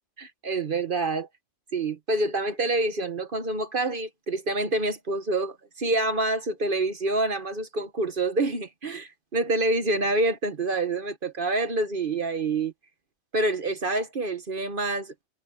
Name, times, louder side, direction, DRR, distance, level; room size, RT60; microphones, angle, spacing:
voice 1, 0.2-1.3 1.7-12.7 13.3-15.1, right 2 dB, 50° right, 1.4 m, -27 dB
omnidirectional pair, 1.2 m